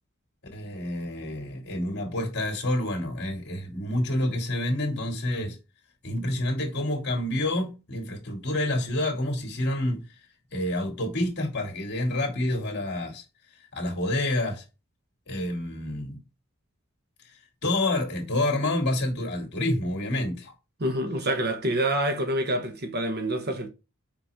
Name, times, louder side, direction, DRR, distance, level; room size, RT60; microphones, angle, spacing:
voice 1, 0.5-5.6 6.0-10.1 10.5-13.2 13.7-14.6 15.3-16.2 17.2-17.3 17.6-20.5, left 1 dB, 50° left, 2.4 m, -28 dB
voice 2, 20.8-23.7, right 1 dB, 50° right, 1.1 m, -27 dB
5.3 x 5.3 x 3.5 m
head